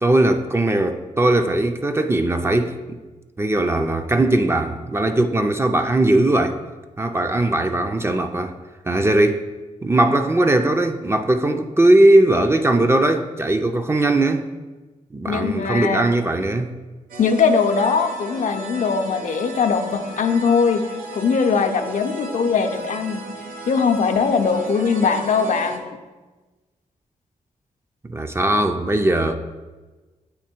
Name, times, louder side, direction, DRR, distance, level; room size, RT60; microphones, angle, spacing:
voice 1, 0.0-3.0 3.4-6.6 7.0-8.5 8.9-9.4 9.8-14.5 15.1-16.7 28.0-29.4, right 1 dB, 20° right, 0.4 m, -19 dB
voice 2, 15.3-16.0 17.2-20.8 21.1-23.2 23.7-26.0, left 5 dB, 65° left, 0.5 m, -20 dB
sound 1, 17.1-25.8, right 1 dB, 85° right, 0.7 m, -36 dB
8.4 x 3.0 x 4.4 m
cardioid pair, 90°, 14 cm